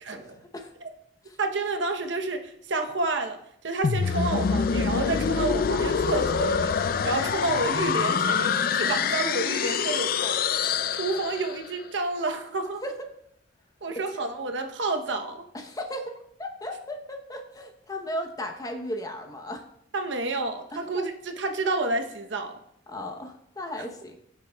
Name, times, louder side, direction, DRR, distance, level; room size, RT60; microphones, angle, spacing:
voice 1, 1.4-3.4 3.6-10.4 10.9-12.8 13.8-15.4 19.9-22.6, right 3 dB, 70° right, 5 dB, 0.9 m, -29 dB
sound 1, 3.8-11.7, left 6 dB, 50° left, 0.4 m, -25 dB
voice 2, 15.5-16.0 16.4-19.6 20.7-21.1 22.9-24.2, left 1 dB, 20° left, 4 dB, 0.8 m, -36 dB
15.0 x 7.0 x 2.3 m, 0.74 s
head